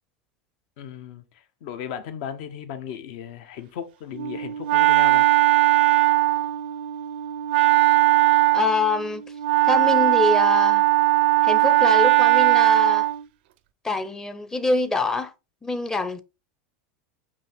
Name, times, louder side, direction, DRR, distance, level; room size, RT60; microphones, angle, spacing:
voice 1, 0.8-5.3, left 9 dB, 65° left, 0.8 m, -36 dB
Wind instrument woodwind instrument, 4.1-13.2, right 18 dB, 75° right, 0.4 m, -19 dB
voice 2, 8.5-9.2 9.6-10.8 11.4-13.1 13.8-15.3 15.6-16.2, left 3 dB, 10° left, 0.6 m, -25 dB
5.3 x 2.8 x 3.4 m
supercardioid pair, 130°, 5 cm